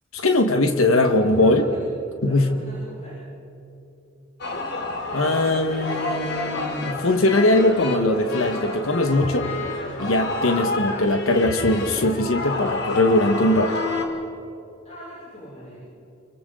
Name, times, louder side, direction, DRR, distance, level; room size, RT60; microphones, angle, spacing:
voice 1, 0.1-1.7 2.2-2.6 5.1-9.5 10.0-13.8, left 2 dB, 90° left, 6 dB, 1.5 m, -20 dB
voice 2, 0.9-1.9 2.2-3.2 14.8-15.8, equal, 35° left, -7 dB, 6.9 m, -40 dB
sound 1, 4.4-14.1, left 3 dB, 55° left, 2.7 m, -29 dB
29.0 x 25.0 x 3.9 m, 2.9 s
head